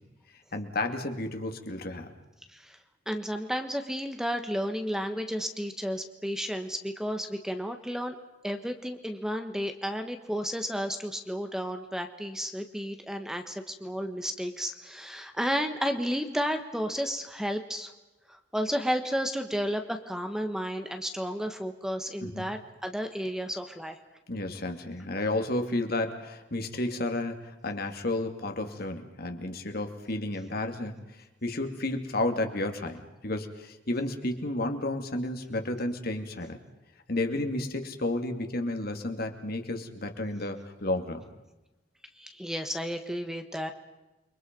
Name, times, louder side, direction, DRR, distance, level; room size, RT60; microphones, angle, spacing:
voice 1, 0.5-2.1 22.2-22.6 24.3-31.0 31.4-36.6 37.1-41.2, left 2 dB, 55° left, 5 dB, 2.6 m, -32 dB
voice 2, 3.1-8.2 8.4-17.9 18.3-24.0 42.2-43.7, equal, 5° right, 6 dB, 1.4 m, -32 dB
29.5 x 24.0 x 5.4 m, 1.0 s
head